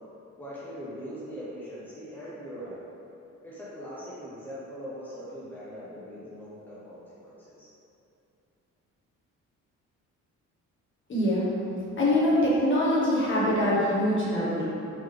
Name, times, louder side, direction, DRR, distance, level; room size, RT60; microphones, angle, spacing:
voice 1, 0.4-2.8 3.4-7.7, equal, 5° left, -9 dB, 0.9 m, -41 dB
voice 2, 11.1-11.5 12.0-14.6, left 1 dB, 40° left, -8 dB, 1.3 m, -24 dB
3.9 x 3.1 x 3.3 m, 2.7 s
cardioid pair, 90°, 30 cm